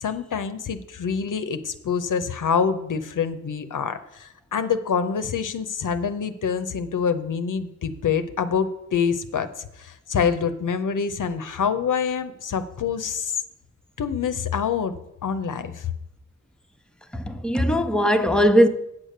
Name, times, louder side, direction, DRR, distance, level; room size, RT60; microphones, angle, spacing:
voice 1, 0.0-13.3 14.0-14.9 15.2-15.9, left 6 dB, 90° left, 0.7 m, -26 dB
voice 2, 17.1-18.7, equal, 5° left, 0.8 m, -19 dB
8.4 x 6.6 x 6.5 m
wide cardioid pair, 60°, 30 cm